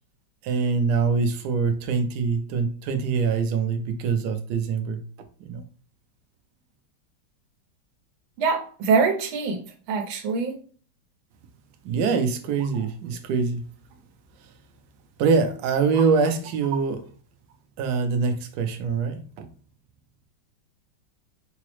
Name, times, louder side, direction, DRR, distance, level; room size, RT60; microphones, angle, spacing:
voice 1, 0.4-5.0 5.4-5.6 11.8-13.6 15.2-17.0 17.8-19.2, right 5 dB, 70° right, 1.0 m, -24 dB
voice 2, 8.4-9.6 9.9-10.5, right 4 dB, 90° right, 1.5 m, -23 dB
4.6 x 2.0 x 3.0 m
omnidirectional pair, 2.1 m